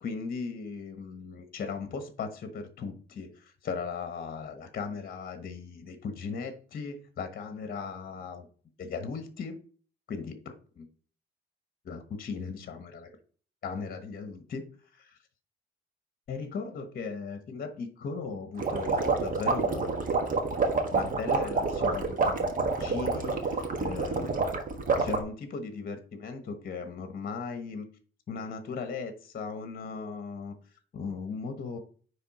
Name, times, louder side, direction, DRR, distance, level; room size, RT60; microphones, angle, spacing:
voice 1, 0.0-8.5 8.8-9.6 10.1-10.9 11.8-13.1 13.6-14.6 14.9-15.2 16.3-20.0 20.9-22.5 22.8-24.6 25.0-27.9 28.3-30.5 30.9-31.8, left 5 dB, 50° left, 8 dB, 1.1 m, -37 dB
sound 1, 18.6-25.2, right 4 dB, 45° right, 1.4 m, -28 dB
9.6 x 3.3 x 4.1 m, 0.43 s
cardioid pair, 90°, 20 cm